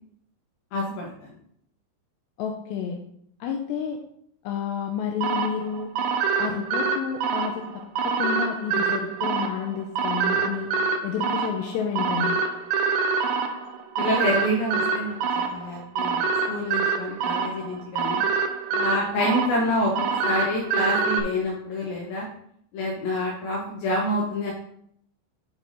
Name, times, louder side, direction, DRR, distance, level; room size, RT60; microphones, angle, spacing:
voice 1, 0.7-1.3 14.0-18.2 18.7-22.3 22.7-24.5, left 1 dB, 75° left, -3 dB, 2.3 m, -27 dB
voice 2, 2.4-3.0 3.4-4.0 4.4-5.9 6.4-10.7 11.0-12.4, left 7 dB, 90° left, 2 dB, 2.5 m, -30 dB
sound 1, 5.2-21.2, right 5 dB, 85° right, 3.0 m, -26 dB
9.0 x 4.4 x 4.1 m, 0.67 s
omnidirectional pair, 5.6 m